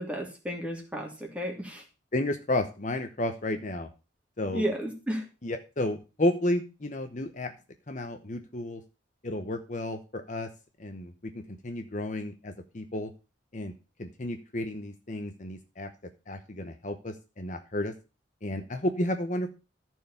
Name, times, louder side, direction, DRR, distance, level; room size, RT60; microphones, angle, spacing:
voice 1, 0.0-1.8 4.5-5.3, equal, 5° right, 0 dB, 2.8 m, -33 dB
voice 2, 2.1-3.9 4.4-4.7 5.4-7.5 7.9-8.8 9.2-10.5 10.8-13.1 13.5-13.7 14.0-15.9 16.3-17.9 18.4-19.5, left 1 dB, 40° left, 7 dB, 0.9 m, -32 dB
14.0 x 4.7 x 7.0 m, 0.31 s
head